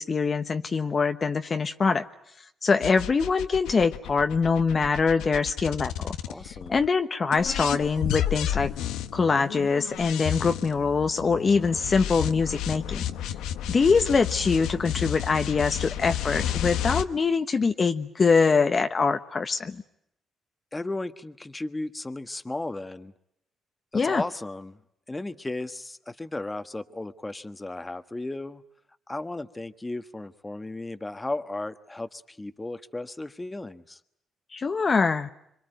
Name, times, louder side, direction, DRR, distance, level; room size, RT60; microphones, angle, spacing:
voice 1, 0.0-2.0 2.6-6.2 6.7-8.7 9.1-13.0 13.7-19.8 23.9-24.2 34.5-35.3, left 5 dB, 40° left, 7 dB, 1.1 m, -24 dB
sound 1, 2.8-6.9 7.3-17.0, left 11 dB, 90° left, 1.2 m, -32 dB
voice 2, 6.3-6.8 20.7-23.1 23.9-24.8 25.1-28.6 29.1-34.0, left 2 dB, 15° left, 10 dB, 1.4 m, -35 dB
26.5 x 24.0 x 9.2 m, 0.79 s
cardioid pair, 90°, 0 cm